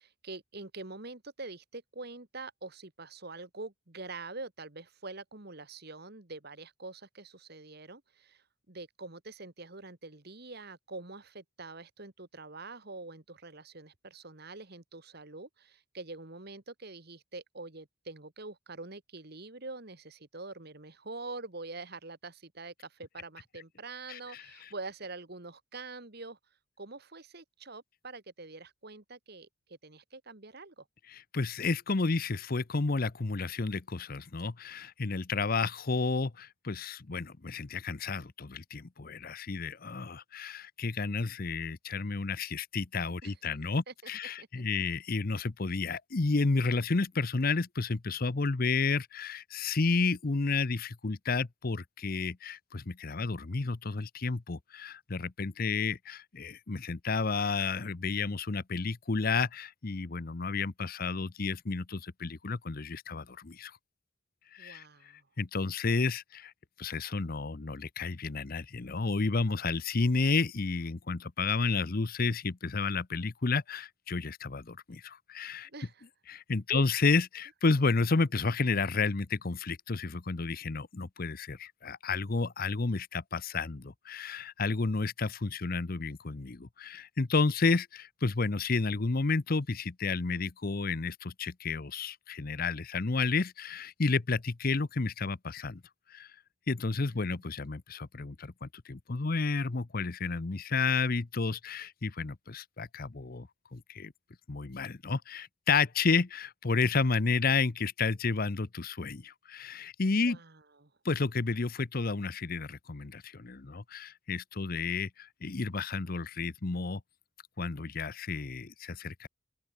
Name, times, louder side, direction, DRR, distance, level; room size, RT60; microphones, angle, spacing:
voice 1, 0.0-26.4 26.8-30.8 43.2-43.3 43.9-44.1 44.4-44.6 64.6-65.2 75.6-76.0 76.7-76.9 96.9-97.4 110.2-110.9, right 3 dB, 50° right, 1.8 m, -45 dB
voice 2, 24.1-24.7 31.1-63.7 64.5-64.8 65.4-66.5 66.8-75.7 76.3-95.8 96.1-96.3 96.7-104.1 104.5-110.4 111.0-117.0 117.6-119.3, left 4 dB, 45° left, 0.7 m, -31 dB
open air
head